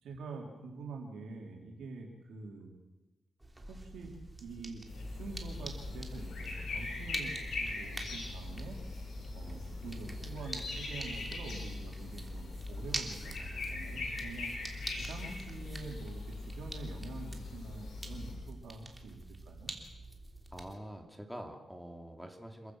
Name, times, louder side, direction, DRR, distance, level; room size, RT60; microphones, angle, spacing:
voice 1, 0.0-2.7 3.7-4.1 4.4-8.8 9.3-14.5 14.9-19.2 19.5-19.7, right 3 dB, 85° right, 1 dB, 4.0 m, -46 dB
sound 1, 3.4-20.8, right 2 dB, 15° right, 3.3 m, -47 dB
sound 2, 4.9-18.4, left 3 dB, 75° left, 7.5 m, -41 dB
voice 2, 20.5-22.7, equal, ahead, 4 dB, 2.9 m, -46 dB
27.5 x 14.5 x 6.5 m, 1.1 s
cardioid pair, 75°, 0 cm